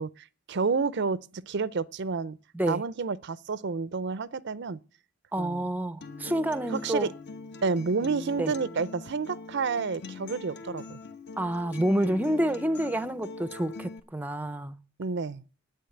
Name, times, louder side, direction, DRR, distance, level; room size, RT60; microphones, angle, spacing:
voice 1, 0.0-2.4 2.7-4.8 5.4-5.6 6.7-7.1 7.6-11.0 15.0-15.4, right 4 dB, 55° right, 0.5 m, -30 dB
voice 2, 5.3-7.1 8.4-8.5 11.4-14.8, right 1 dB, 10° right, 0.5 m, -28 dB
Acoustic guitar, 6.0-14.0, left 3 dB, 55° left, 1.2 m, -42 dB
10.5 x 9.4 x 7.8 m
head